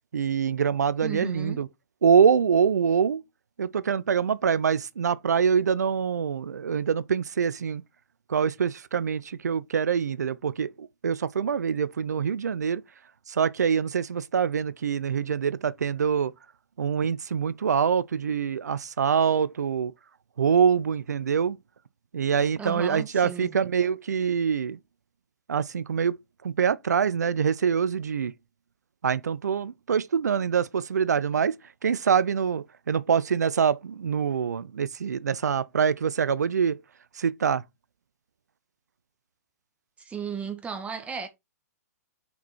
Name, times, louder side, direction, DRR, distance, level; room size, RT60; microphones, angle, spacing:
voice 1, 0.1-1.7 2.0-3.2 3.6-7.8 8.3-12.8 13.3-16.3 16.8-19.9 20.4-21.6 22.1-24.8 25.5-28.3 29.0-31.6 31.8-36.8 37.2-37.6, right 7 dB, 80° right, 0.6 m, -25 dB
voice 2, 1.0-1.6 22.6-23.6 40.0-41.3, right 6 dB, 15° right, 1.4 m, -35 dB
5.8 x 4.6 x 4.1 m
hypercardioid pair, 125°, 9 cm